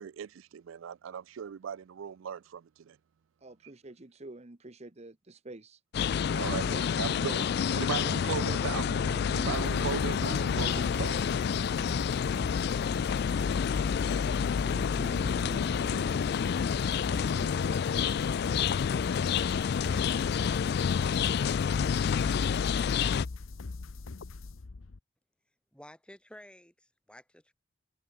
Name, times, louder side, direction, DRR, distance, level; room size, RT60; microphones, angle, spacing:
voice 1, 0.0-3.0 6.3-7.5 7.7-8.9 9.3-11.3, right 7 dB, 80° right, 0.4 m, -37 dB
voice 2, 3.4-5.8, right 2 dB, 35° right, 1.0 m, -48 dB
sound 1, 5.9-23.3, left 7 dB, 55° left, 0.3 m, -29 dB
sound 2, 6.6-19.0, right 2 dB, 55° right, 1.1 m, -49 dB
sound 3, 9.5-25.0, left 3 dB, 90° left, 0.8 m, -41 dB
voice 3, 25.7-27.5, left 1 dB, 5° left, 5.2 m, -52 dB
head